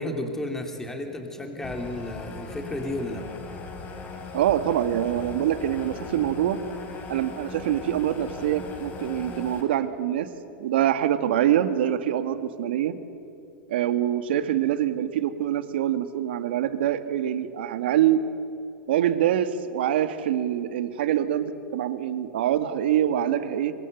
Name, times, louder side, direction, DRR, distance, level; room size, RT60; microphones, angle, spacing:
voice 1, 0.0-3.3, left 1 dB, 5° left, 3 dB, 3.0 m, -32 dB
sound 1, 1.6-9.6, left 3 dB, 30° left, 4.6 m, -39 dB
voice 2, 4.3-6.6 7.1-10.3 10.6-12.9 13.7-18.2 18.9-23.7, right 11 dB, 75° right, 10 dB, 1.8 m, -25 dB
25.5 x 21.5 x 8.0 m, 2.6 s
hypercardioid pair, 125°, 6 cm